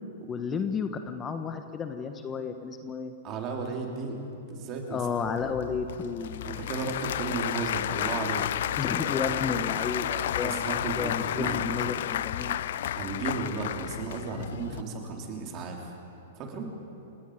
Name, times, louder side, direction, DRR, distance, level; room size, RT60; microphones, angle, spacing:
voice 1, 0.3-3.1 4.9-6.5 8.8-10.7 11.0-12.6, left 5 dB, 20° left, 8 dB, 1.2 m, -32 dB
voice 2, 3.2-5.0 5.4-5.6 6.4-8.5 10.4-11.9 12.9-15.9 16.4-16.7, right 4 dB, 35° right, 1 dB, 4.0 m, -34 dB
Applause / Crowd, 5.2-14.8, left 11 dB, 65° left, 0.4 m, -32 dB
30.0 x 18.5 x 5.2 m, 2.9 s
hypercardioid pair, 115°, 0 cm